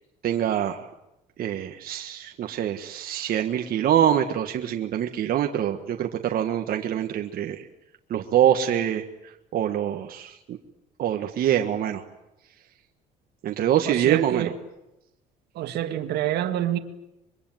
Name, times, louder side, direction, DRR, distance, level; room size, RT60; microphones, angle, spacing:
voice 1, 0.2-0.8 1.4-7.7 8.1-9.0 9.5-10.6 11.0-12.0 13.4-14.5, right 10 dB, 60° right, 4 dB, 1.6 m, -24 dB
voice 2, 13.9-14.6 15.5-16.8, right 12 dB, 75° right, 8 dB, 2.1 m, -27 dB
25.0 x 23.5 x 9.2 m, 0.88 s
cardioid pair, 110°, 17 cm